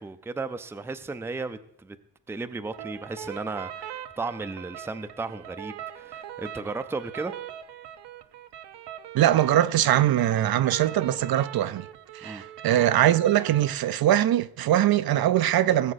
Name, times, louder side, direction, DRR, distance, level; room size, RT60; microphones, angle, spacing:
voice 1, 0.0-2.0 2.3-7.3 12.2-12.4, right 3 dB, 5° right, 0.4 m, -35 dB
sound 1, 2.7-13.7, right 10 dB, 85° right, 0.9 m, -40 dB
voice 2, 9.1-11.9 12.1-15.9, right 12 dB, 65° right, 0.5 m, -22 dB
19.0 x 7.7 x 4.1 m
wide cardioid pair, 145°, 40 cm